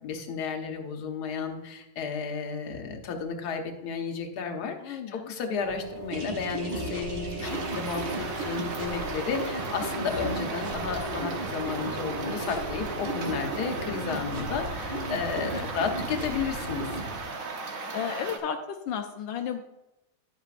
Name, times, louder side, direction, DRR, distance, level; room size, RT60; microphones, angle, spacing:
voice 1, 0.0-16.9, left 5 dB, 60° left, 3 dB, 1.5 m, -33 dB
voice 2, 4.8-5.2 15.4-15.6 17.9-19.6, left 8 dB, 85° left, 4 dB, 1.3 m, -33 dB
sound 1, 5.6-13.9, right 1 dB, 10° right, 2.3 m, -39 dB
sound 2, 6.1-17.2, right 1 dB, 70° right, 2.2 m, -36 dB
sound 3, 7.4-18.4, right 3 dB, 55° right, 1.2 m, -37 dB
11.0 x 8.1 x 2.5 m, 0.97 s
omnidirectional pair, 2.0 m